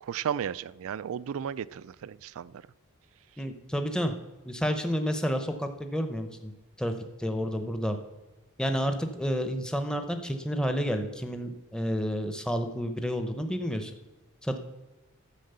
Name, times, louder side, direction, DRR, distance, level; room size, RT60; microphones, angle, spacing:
voice 1, 0.0-2.5, right 8 dB, 65° right, 18 dB, 0.4 m, -34 dB
voice 2, 3.4-4.1 4.4-6.5 6.8-6.9 7.2-8.0 8.6-13.9 14.4-14.6, equal, 5° left, 7 dB, 0.7 m, -30 dB
11.5 x 7.4 x 6.8 m, 1.1 s
head